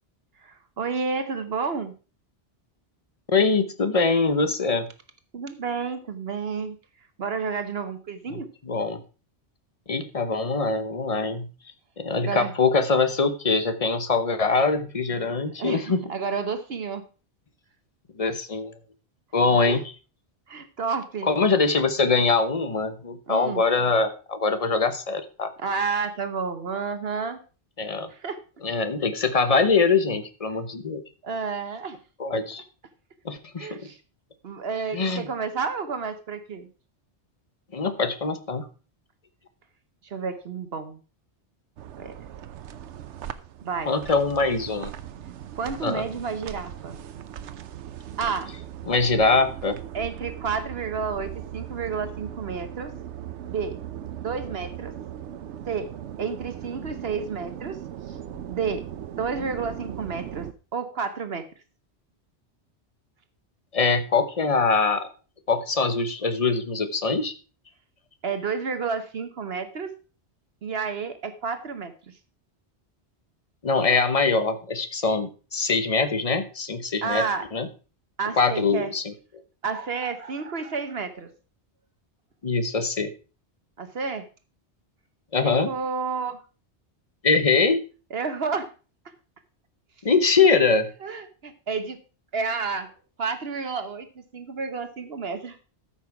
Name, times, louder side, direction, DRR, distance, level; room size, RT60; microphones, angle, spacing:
voice 1, 0.4-1.9 5.3-6.8 7.2-8.5 12.2-12.5 15.6-17.0 19.7-19.8 20.5-21.3 23.3-23.6 25.6-27.4 28.1-28.4 31.2-32.0 33.6-34.0 34.4-36.7 40.0-41.0 42.0-42.1 43.6-43.9 45.5-47.0 48.2-48.5 49.9-52.9 53.5-53.8 54.2-54.9 55.7-55.9 56.2-57.8 58.1-58.2 58.5-58.8 59.2-60.5 60.7-61.5 68.2-69.9 70.6-71.9 77.0-77.5 78.2-78.9 79.6-81.3 83.8-84.3 85.4-86.4 88.1-88.7 91.0-92.0 92.3-94.1 94.3-95.6, right 5 dB, 65° right, 9 dB, 1.2 m, -30 dB
voice 2, 3.3-4.9 8.3-9.0 9.9-11.5 12.0-16.0 18.2-18.7 19.3-19.8 21.3-25.5 27.8-28.1 28.6-31.0 32.2-32.6 33.2-33.9 34.9-35.3 37.7-38.7 43.9-44.9 45.8-46.0 48.9-49.8 63.7-65.1 65.5-67.3 73.6-77.2 77.5-77.7 78.4-79.1 82.4-83.1 85.3-85.7 87.2-87.8 90.0-90.9, left 4 dB, 35° left, 10 dB, 1.0 m, -23 dB
sound 1, 41.8-60.5, right 10 dB, 85° right, 1.0 m, -38 dB
13.5 x 5.9 x 4.7 m, 0.35 s
omnidirectional pair, 1.1 m